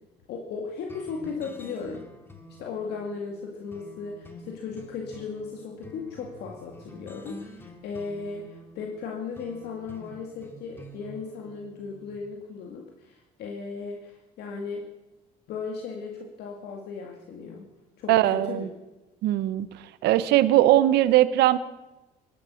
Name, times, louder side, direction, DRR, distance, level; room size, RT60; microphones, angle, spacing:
voice 1, 0.3-2.0 2.6-14.8 15.5-17.6 18.0-18.7, left 5 dB, 75° left, 0 dB, 2.2 m, -36 dB
sound 1, 0.9-12.2, equal, 15° left, 2.3 m, -48 dB
voice 2, 18.1-18.7 19.2-19.7 20.0-21.6, right 14 dB, 80° right, 15 dB, 0.9 m, -20 dB
18.0 x 11.5 x 6.4 m, 1.0 s
cardioid pair, 110°, 17 cm